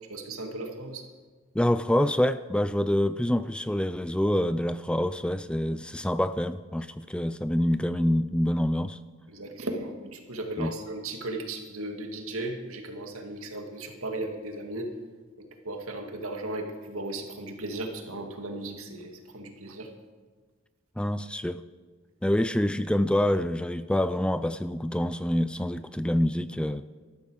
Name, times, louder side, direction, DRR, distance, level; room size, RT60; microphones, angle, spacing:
voice 1, 0.1-1.0 9.3-14.9 15.4-19.9, right 2 dB, 85° right, 2.2 m, -36 dB
voice 2, 1.5-9.0 10.6-10.8 21.0-21.6 22.2-26.8, left 1 dB, 5° left, 0.3 m, -26 dB
13.5 x 13.0 x 6.4 m
head